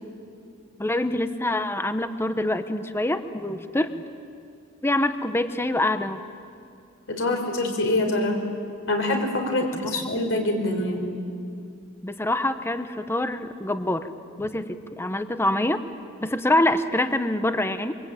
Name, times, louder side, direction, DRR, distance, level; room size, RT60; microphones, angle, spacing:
voice 1, 0.8-4.0 4.8-6.2 9.7-9.9 12.0-14.1 14.4-15.8 16.2-17.9, left 1 dB, 10° left, 10 dB, 0.9 m, -25 dB
voice 2, 7.1-8.4 8.9-11.2, left 1 dB, 70° left, 3 dB, 4.7 m, -25 dB
25.0 x 24.0 x 9.1 m, 2.4 s
head